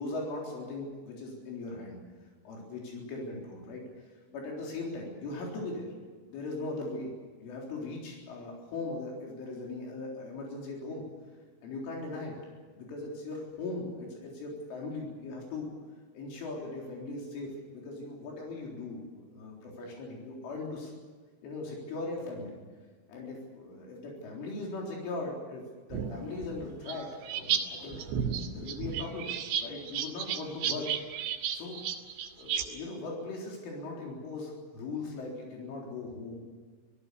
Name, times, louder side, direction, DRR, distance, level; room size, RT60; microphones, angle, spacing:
voice 1, 0.0-2.0 2.4-5.9 6.2-7.1 7.4-11.0 11.6-12.4 12.8-15.7 16.1-19.0 19.3-20.9 21.4-22.6 23.1-28.0 28.5-29.3 29.6-30.9 31.5-31.8 32.3-36.4, left 2 dB, 80° left, -2 dB, 6.3 m, -39 dB
sound 1, 25.9-27.6 27.9-32.7, right 8 dB, 75° right, 4.2 m, -33 dB
25.5 x 18.0 x 6.8 m, 1.5 s
omnidirectional pair, 5.6 m